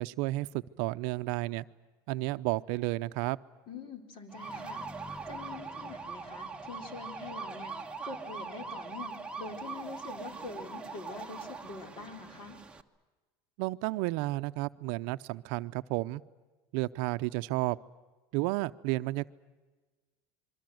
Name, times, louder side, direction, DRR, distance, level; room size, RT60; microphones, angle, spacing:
voice 1, 0.0-1.6 2.1-3.4 13.6-16.2 16.7-17.8 18.3-19.3, right 20 dB, 70° right, 13 dB, 0.8 m, -32 dB
voice 2, 3.7-4.9 5.3-12.6, left 4 dB, 45° left, 6 dB, 4.2 m, -45 dB
sound 1, 4.3-12.8, right 4 dB, 10° right, 1.3 m, -42 dB
27.0 x 23.5 x 7.9 m, 1.3 s
cardioid pair, 140°, 11 cm